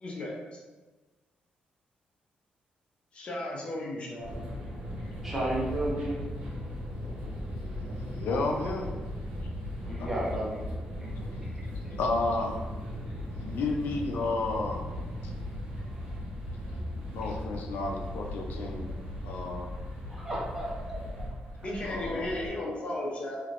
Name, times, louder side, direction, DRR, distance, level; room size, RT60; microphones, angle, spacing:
voice 1, 0.0-0.6 3.1-4.4 21.6-23.4, left 1 dB, 40° left, -2 dB, 0.6 m, -35 dB
sound 1, 4.2-22.5, left 1 dB, 75° right, 1.1 m, -37 dB
voice 2, 5.2-6.2 9.9-10.6 11.8-11.9 20.1-21.3, right 1 dB, 10° right, -6 dB, 0.9 m, -33 dB
voice 3, 7.6-8.9 10.0-10.1 11.2-11.3 12.0-12.6 13.4-14.8 15.2-15.3 16.7-18.9 19.2-19.7 21.8-22.3, left 3 dB, 85° left, 1 dB, 0.5 m, -32 dB
3.4 x 2.8 x 2.5 m, 1.3 s
cardioid pair, 150°, 3 cm